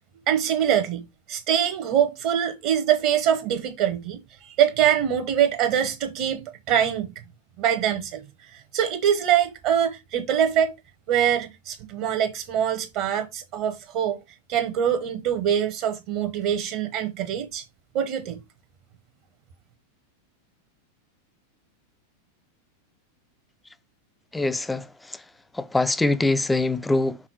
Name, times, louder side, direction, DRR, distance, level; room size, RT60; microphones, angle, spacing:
voice 1, 0.3-7.1 7.6-10.8 11.1-14.2 14.5-17.6 17.9-18.4, right 9 dB, 45° right, 0.9 m, -24 dB
voice 2, 24.3-25.2 25.5-27.2, left 2 dB, 5° left, 0.5 m, -24 dB
6.1 x 3.7 x 4.6 m
figure-of-eight pair, 90°, 0 cm